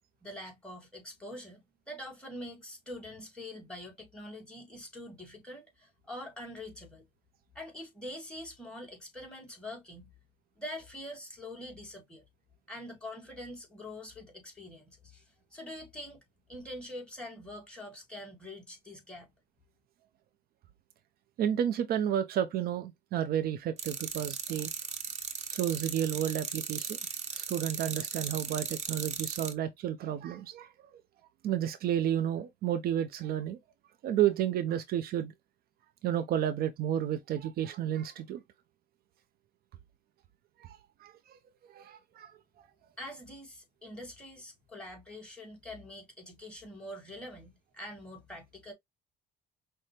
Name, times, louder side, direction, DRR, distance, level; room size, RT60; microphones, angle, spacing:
voice 1, 0.2-1.6 1.9-7.1 7.5-10.1 10.6-12.2 12.7-15.2 15.5-16.2 16.5-19.3 43.0-48.7, left 1 dB, 5° left, 2.0 m, -44 dB
voice 2, 21.4-24.7 25.5-27.0 27.3-30.7 31.4-33.6 34.0-35.3 36.0-38.4 40.6-41.4 41.7-42.3, right 10 dB, 65° right, 0.6 m, -31 dB
sound 1, 23.8-29.5, right 6 dB, 40° right, 0.9 m, -37 dB
5.7 x 2.1 x 3.2 m
cardioid pair, 110°, 17 cm